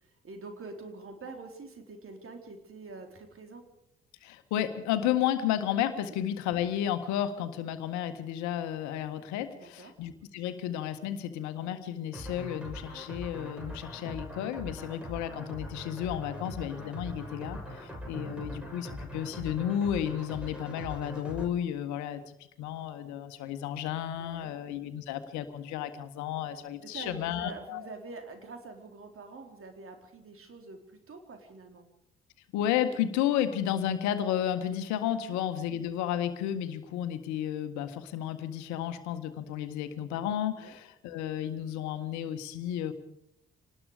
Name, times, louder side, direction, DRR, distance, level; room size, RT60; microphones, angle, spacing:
voice 1, 0.0-3.6 6.1-6.2 9.5-9.9 24.2-24.5 26.8-31.9 35.2-35.4 40.6-40.7, right 3 dB, 45° right, 4 dB, 4.3 m, -46 dB
voice 2, 4.2-27.9 32.5-42.9, left 10 dB, 65° left, 9 dB, 1.7 m, -32 dB
sound 1, 12.1-21.5, equal, 5° right, 7.1 m, -42 dB
25.5 x 19.5 x 5.1 m, 0.82 s
figure-of-eight pair, 45°, 31 cm